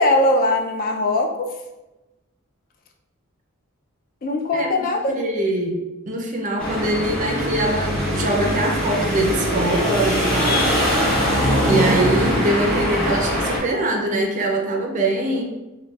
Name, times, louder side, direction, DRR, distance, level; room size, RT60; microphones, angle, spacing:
voice 1, 0.0-1.5 4.2-5.2 11.3-11.7, left 2 dB, 40° left, 2 dB, 0.3 m, -21 dB
voice 2, 5.2-5.8 6.1-10.7 11.7-15.4, right 1 dB, 35° right, 1 dB, 0.4 m, -23 dB
sound 1, 6.6-13.6, equal, 5° left, 0.7 m, -22 dB
4.0 x 2.2 x 2.3 m, 1.0 s
head